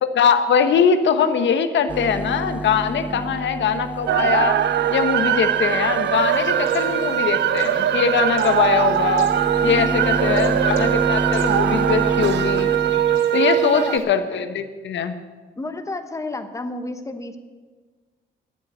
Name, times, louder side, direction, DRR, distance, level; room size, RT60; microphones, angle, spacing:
voice 1, 0.0-4.6 4.9-9.3 9.6-12.7 13.3-15.2, left 7 dB, 65° left, 9 dB, 1.0 m, -21 dB
sound 1, 1.9-13.2, right 2 dB, 5° right, 0.4 m, -29 dB
voice 2, 3.1-3.4 9.6-10.6 13.4-13.9 15.6-17.4, left 2 dB, 15° left, 8 dB, 1.1 m, -32 dB
sound 2, 4.1-14.0, right 11 dB, 60° right, 0.6 m, -21 dB
sound 3, 6.1-14.0, left 6 dB, 85° left, 1.9 m, -44 dB
10.5 x 8.4 x 9.3 m, 1.4 s
cardioid pair, 90°, 20 cm